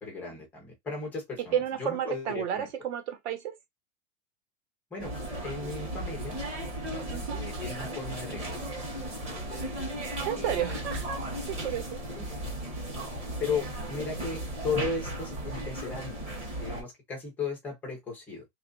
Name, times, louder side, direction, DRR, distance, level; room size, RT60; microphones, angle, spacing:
voice 1, 0.0-2.7 4.9-5.2 5.4-6.4 7.3-8.6 9.3-9.6 10.3-11.0 12.2-12.3 13.4-16.2 16.6-18.5, left 4 dB, 5° left, 0.4 m, -36 dB
voice 2, 1.5-3.6 7.1-7.4 10.2-11.2 11.5-12.0, right 9 dB, 55° right, 1.0 m, -31 dB
sound 1, 5.0-16.8, right 1 dB, 15° right, 0.9 m, -36 dB
3.1 x 2.4 x 3.7 m
supercardioid pair, 180°, 41 cm